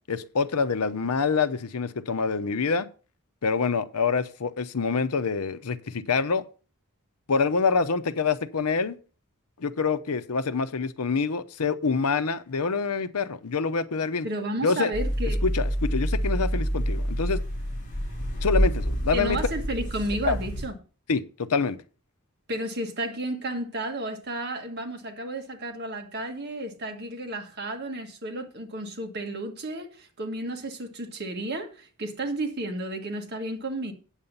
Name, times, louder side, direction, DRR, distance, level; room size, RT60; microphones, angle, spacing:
voice 1, 0.1-2.9 3.4-6.4 7.3-9.0 9.6-14.3 14.6-14.9 15.4-17.4 18.4-19.4 20.2-20.4 21.1-21.8, left 4 dB, 85° left, 0.7 m, -26 dB
voice 2, 14.2-15.4 19.1-20.7 22.5-33.9, right 1 dB, 45° right, 1.6 m, -32 dB
sound 1, 14.9-20.7, equal, 35° left, 3.3 m, -27 dB
8.9 x 7.3 x 5.4 m
head